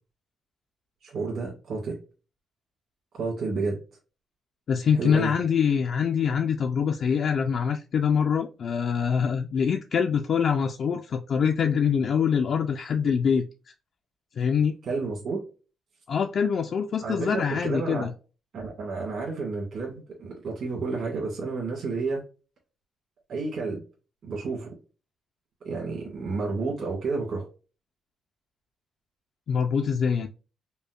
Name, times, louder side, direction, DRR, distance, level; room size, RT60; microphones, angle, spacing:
voice 1, 1.0-2.0 3.1-3.8 5.0-5.3 14.8-15.4 17.0-18.1 18.5-22.2 23.3-23.8 24.2-24.7 25.6-27.5, right 4 dB, 55° right, -3 dB, 1.7 m, -31 dB
voice 2, 4.7-13.4 14.4-14.7 16.1-18.1 29.5-30.3, left 7 dB, 50° left, 4 dB, 0.3 m, -24 dB
5.2 x 2.1 x 2.4 m, 0.33 s
cardioid pair, 140°, 0 cm